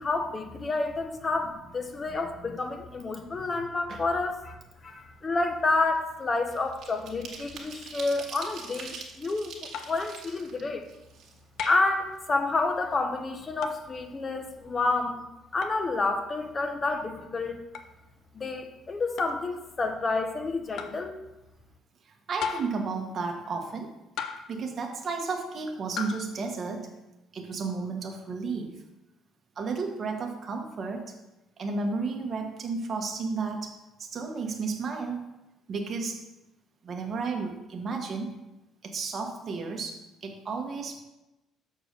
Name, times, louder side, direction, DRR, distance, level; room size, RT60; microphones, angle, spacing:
voice 1, 0.0-4.5 4.8-10.9 11.6-15.3 15.5-17.6 18.3-21.1, left 3 dB, 25° left, 5 dB, 0.9 m, -29 dB
sound 1, 4.8-5.0 5.3-11.8 12.1-12.2 12.5-13.5 13.8-14.0 14.3-14.6, right 5 dB, 60° right, 1.6 m, -45 dB
sound 2, 9.7-10.1 11.6-12.0 13.6-13.9 15.6-15.8 17.7-17.9 19.2-19.4 20.8-21.0 22.4-22.9 24.2-24.6 26.0-26.3, left 6 dB, 65° left, 0.6 m, -35 dB
voice 2, 22.0-23.9 24.5-26.9 27.3-28.8 29.6-31.1 31.6-35.2 35.7-36.2 36.8-38.3 38.8-41.0, right 4 dB, 40° right, 2 dB, 1.3 m, -33 dB
6.7 x 4.4 x 6.6 m, 0.97 s
cardioid pair, 120°, 0 cm